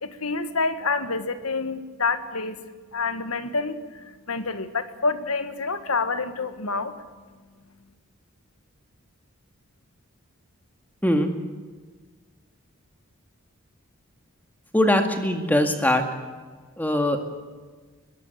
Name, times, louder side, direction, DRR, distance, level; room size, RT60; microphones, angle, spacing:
voice 1, 0.0-2.6 2.9-3.8 4.3-6.9, left 4 dB, 85° left, 11 dB, 1.7 m, -27 dB
voice 2, 14.7-16.0 16.8-17.3, left 1 dB, 10° left, 5 dB, 2.0 m, -21 dB
21.0 x 16.5 x 9.2 m, 1.4 s
head